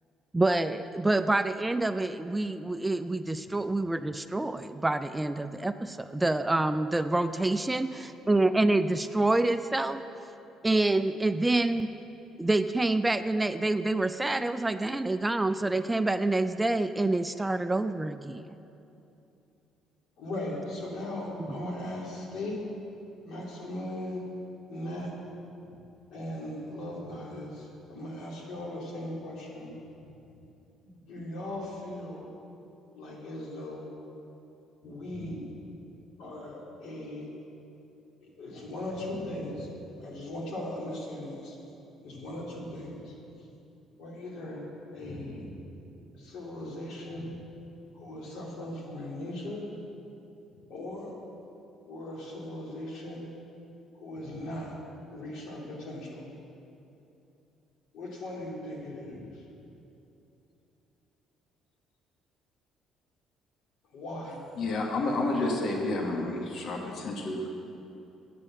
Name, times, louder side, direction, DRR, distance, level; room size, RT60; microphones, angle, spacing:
voice 1, 0.3-10.0 10.6-11.9 12.4-18.5 21.6-21.7, right 2 dB, 10° right, 11 dB, 0.3 m, -27 dB
voice 2, 20.2-22.6 23.2-24.2 24.7-25.2 26.1-29.8 30.8-32.3 32.9-33.9 34.8-35.5 36.2-37.3 38.2-39.7 40.0-41.6 42.0-43.1 44.0-45.5 46.1-47.3 47.9-49.7 50.7-51.1 51.8-53.2 53.9-54.8 55.1-56.3 57.9-59.4 63.9-64.4, left 1 dB, 75° left, -3 dB, 2.5 m, -38 dB
voice 3, 64.6-67.5, left 2 dB, 55° left, 1 dB, 1.3 m, -30 dB
8.6 x 8.4 x 7.3 m, 2.8 s
cardioid pair, 95°, 0 cm